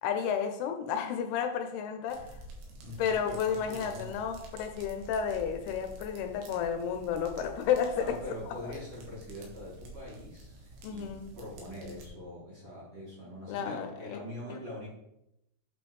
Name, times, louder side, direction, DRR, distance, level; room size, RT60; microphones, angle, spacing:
voice 1, 0.0-2.3 3.0-8.2 10.8-11.3 13.5-14.2, left 7 dB, 80° left, 6 dB, 2.5 m, -32 dB
sound 1, 2.1-12.1, right 1 dB, 75° right, 3.2 m, -49 dB
voice 2, 2.7-4.2 7.9-14.9, left 1 dB, 40° right, -7 dB, 2.6 m, -43 dB
8.5 x 5.1 x 3.1 m, 0.82 s
omnidirectional pair, 4.7 m